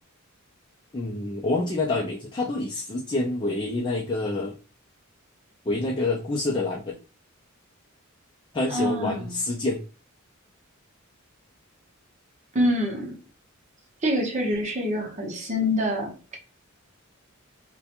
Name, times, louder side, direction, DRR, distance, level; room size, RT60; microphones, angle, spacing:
voice 1, 0.9-4.5 5.7-7.0 8.5-9.8, left 2 dB, 25° left, 0.4 m, -27 dB
voice 2, 8.7-9.4 12.5-13.2 14.0-16.4, equal, 35° right, 0.7 m, -26 dB
2.5 x 2.2 x 2.8 m
head